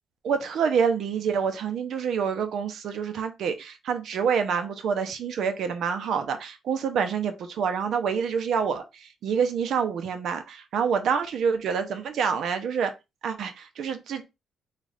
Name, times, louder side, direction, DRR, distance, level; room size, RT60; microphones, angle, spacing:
voice 1, 0.2-12.9 13.2-14.2, right 6 dB, 70° right, 0.7 m, -27 dB
3.7 x 2.4 x 3.4 m
cardioid pair, 90°, 0 cm